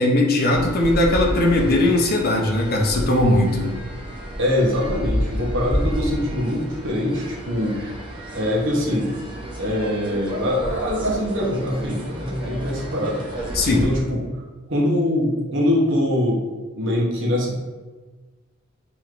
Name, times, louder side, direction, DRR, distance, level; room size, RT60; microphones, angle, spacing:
voice 1, 0.0-3.7 13.5-13.8, left 1 dB, 45° left, 0 dB, 0.5 m, -19 dB
sound 1, 0.5-13.9, equal, 20° right, 0.6 m, -30 dB
voice 2, 4.4-7.8 8.3-9.1 9.6-13.4 13.8-14.4 14.7-16.4 16.8-17.6, left 1 dB, 55° right, -3 dB, 0.8 m, -23 dB
4.6 x 3.0 x 2.5 m, 1.3 s
head